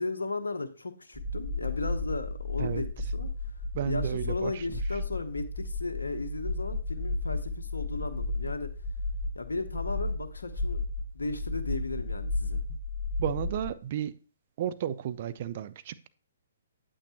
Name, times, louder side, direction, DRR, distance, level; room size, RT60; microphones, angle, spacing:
voice 1, 0.0-3.3 3.8-8.7 9.3-10.8 11.1-12.6, left 3 dB, 80° left, 0.9 m, -35 dB
sound 1, 1.1-13.7, left 2 dB, ahead, 1.2 m, -33 dB
voice 2, 3.7-4.8 13.2-14.1 14.6-16.1, right 10 dB, 45° right, 0.6 m, -33 dB
8.8 x 8.4 x 2.9 m
figure-of-eight pair, 130°, 0 cm